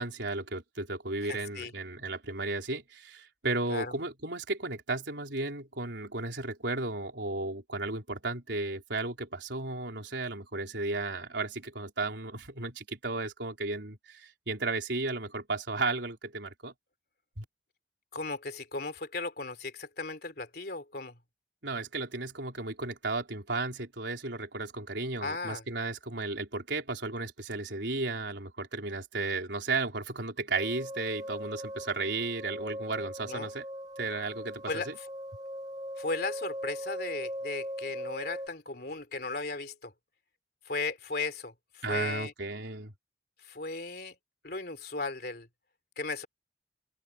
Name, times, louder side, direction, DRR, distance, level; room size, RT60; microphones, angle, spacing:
voice 1, 0.0-16.7 17.4-17.5 21.6-33.6 34.0-35.0 41.8-42.9, right 3 dB, 80° right, 3.9 m, -34 dB
voice 2, 1.2-1.7 3.7-3.9 18.1-21.2 25.2-25.6 33.2-33.6 34.7-35.1 36.0-39.9 40.6-42.3 43.4-44.1 44.4-45.5 46.0-46.3, left 3 dB, 55° left, 3.4 m, -36 dB
sound 1, 30.5-38.5, equal, 20° right, 0.7 m, -40 dB
open air
head